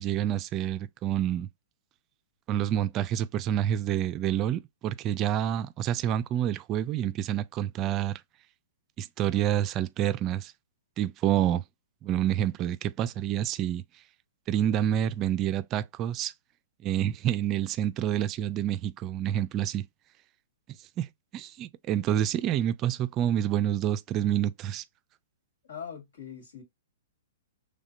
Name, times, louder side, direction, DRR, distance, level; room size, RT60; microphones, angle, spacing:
voice 1, 0.0-1.5 2.5-8.2 9.0-10.5 11.0-11.6 12.0-13.8 14.5-16.3 16.8-19.9 21.0-21.1 21.3-24.8, right 11 dB, 30° right, 0.3 m, -28 dB
voice 2, 25.6-26.6, left 7 dB, 75° left, 2.2 m, -42 dB
4.1 x 3.2 x 2.4 m
hypercardioid pair, 125°, 0 cm